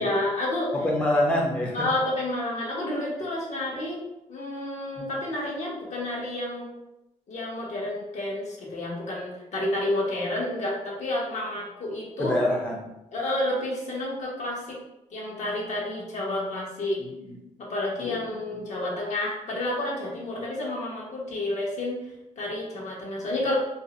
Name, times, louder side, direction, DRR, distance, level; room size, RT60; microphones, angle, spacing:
voice 1, 0.0-0.7 1.7-4.0 4.3-6.7 7.3-12.3 13.1-14.8 15.1-17.0 17.6-22.0 22.4-23.5, left 1 dB, 70° left, -4 dB, 1.1 m, -30 dB
voice 2, 0.8-1.9 5.0-5.1 12.2-12.9 17.0-17.4 18.0-18.2, left 1 dB, 10° left, -3 dB, 0.6 m, -26 dB
2.6 x 2.1 x 4.0 m, 0.92 s
cardioid pair, 120°, 13 cm